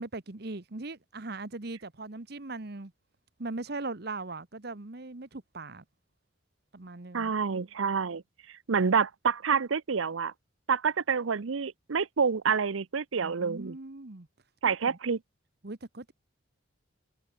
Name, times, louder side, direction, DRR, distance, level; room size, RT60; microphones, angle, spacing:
voice 1, 0.0-2.9 3.4-5.8 6.7-7.3 13.2-14.3 14.8-15.0 15.6-16.1, right 3 dB, 55° right, 1.2 m, -39 dB
voice 2, 7.1-8.2 8.7-10.3 10.7-13.8 14.6-15.2, right 6 dB, 90° right, 0.7 m, -28 dB
head